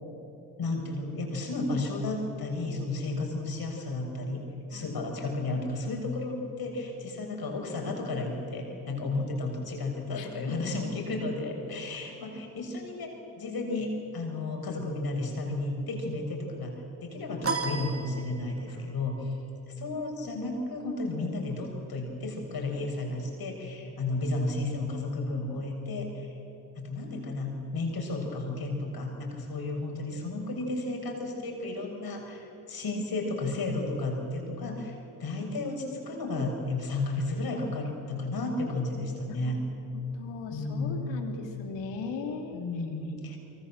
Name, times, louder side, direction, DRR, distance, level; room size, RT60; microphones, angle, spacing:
voice 1, 0.6-4.4 4.7-16.7 17.0-19.4 19.7-26.4 26.8-39.6 40.5-41.1 42.5-43.4, left 2 dB, 55° left, 2 dB, 6.7 m, -33 dB
voice 2, 10.2-10.7 39.3-39.5 39.9-42.6 43.3-43.4, left 5 dB, 75° left, 3 dB, 3.4 m, -39 dB
sound 1, 17.4-18.8, right 4 dB, 30° right, 2.8 m, -33 dB
27.0 x 23.5 x 7.6 m, 2.9 s
hypercardioid pair, 50°, 44 cm